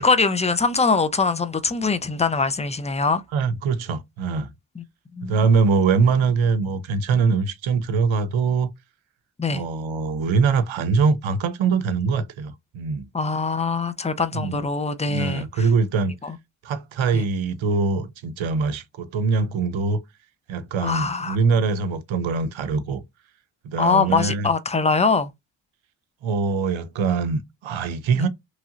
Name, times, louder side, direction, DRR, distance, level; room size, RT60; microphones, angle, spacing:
voice 1, 0.0-3.2 4.8-4.9 5.1-5.4 9.4-9.6 13.1-15.7 16.2-16.4 17.1-17.2 20.8-21.4 23.8-25.3 28.2-28.3, left 4 dB, 15° left, 0.4 m, -23 dB
voice 2, 3.3-4.5 5.2-8.7 9.5-13.1 14.3-14.6 15.1-16.1 16.6-20.0 20.5-23.0 23.6-24.5 26.2-28.3, right 4 dB, 80° right, 0.6 m, -23 dB
3.1 x 2.7 x 2.4 m
cardioid pair, 45°, 47 cm